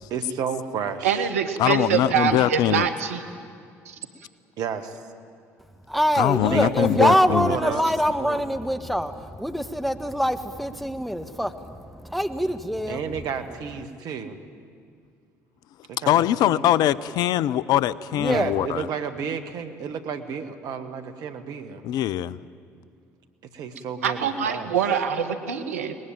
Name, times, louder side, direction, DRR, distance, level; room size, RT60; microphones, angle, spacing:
voice 1, 0.1-1.3 4.6-5.0 6.4-7.9 8.2-8.5 12.9-14.4 15.9-16.8 18.2-21.8 23.5-24.7, right 6 dB, 60° right, 9 dB, 1.7 m, -32 dB
voice 2, 1.0-3.2 3.9-4.0 24.0-26.0, right 7 dB, 85° right, 9 dB, 1.2 m, -24 dB
voice 3, 1.6-2.9 6.2-7.6 16.1-18.9 21.8-22.4, left 12 dB, 60° left, 19 dB, 0.6 m, -22 dB
voice 4, 5.9-13.0 18.2-18.5, equal, ahead, 8 dB, 1.5 m, -24 dB
23.0 x 20.0 x 9.1 m, 2.2 s
hypercardioid pair, 55°, 8 cm